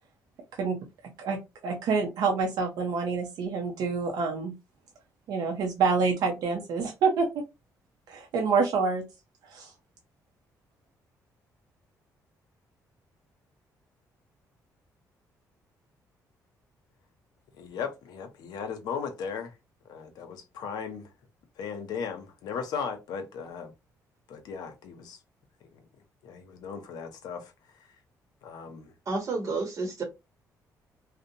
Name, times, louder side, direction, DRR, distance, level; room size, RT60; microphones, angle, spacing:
voice 1, 1.2-4.5 5.3-7.4 8.1-9.0 9.4-9.7, right 5 dB, 75° right, 0.6 m, -27 dB
voice 2, 17.6-19.5 19.9-21.1 21.6-23.7 24.3-25.2 25.7-25.8 26.2-27.5 27.8-27.9 28.4-28.9, left 6 dB, 80° left, 0.7 m, -37 dB
voice 3, 29.1-30.0, right 3 dB, 50° right, 0.8 m, -30 dB
2.7 x 2.1 x 2.6 m
cardioid pair, 105°, 7 cm